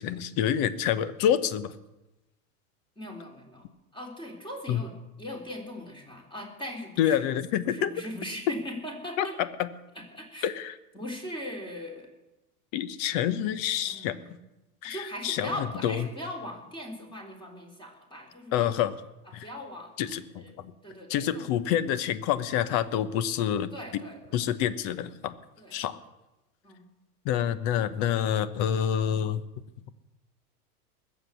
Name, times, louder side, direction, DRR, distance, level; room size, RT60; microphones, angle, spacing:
voice 1, 0.0-1.7 4.7-4.8 7.0-7.9 9.2-9.7 10.4-10.7 12.7-14.1 14.8-16.1 18.5-19.0 19.3-19.5 20.0-20.7 21.1-23.7 24.3-25.3 25.7-26.0 27.2-29.4, left 10 dB, 45° left, 14 dB, 1.1 m, -27 dB
voice 2, 3.0-3.7 3.9-4.9 5.2-7.3 7.6-9.4 9.9-10.5 10.9-12.1 13.8-14.5 14.8-18.8 19.3-21.5 23.7-24.4 25.6-25.9 26.6-26.9, left 1 dB, 10° left, 1 dB, 3.5 m, -40 dB
20.0 x 7.8 x 8.2 m, 0.98 s
hypercardioid pair, 120°, 45 cm